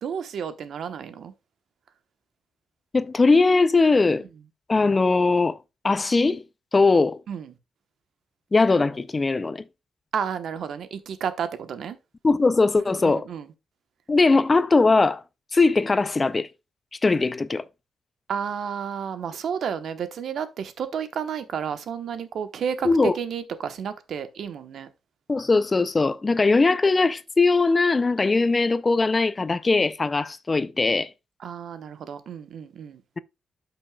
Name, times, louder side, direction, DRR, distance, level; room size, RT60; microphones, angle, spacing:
voice 1, 0.0-1.3 7.3-7.5 10.1-12.0 12.9-13.5 18.3-24.9 31.4-33.0, right 7 dB, 70° right, 1.0 m, -31 dB
voice 2, 2.9-4.2 4.7-5.6 5.8-6.4 6.7-7.2 8.5-9.6 12.2-13.3 14.1-15.2 15.5-16.5 17.0-17.7 22.8-23.1 25.3-31.1, left 3 dB, 25° left, 0.4 m, -20 dB
11.5 x 6.2 x 2.3 m
cardioid pair, 115°, 0 cm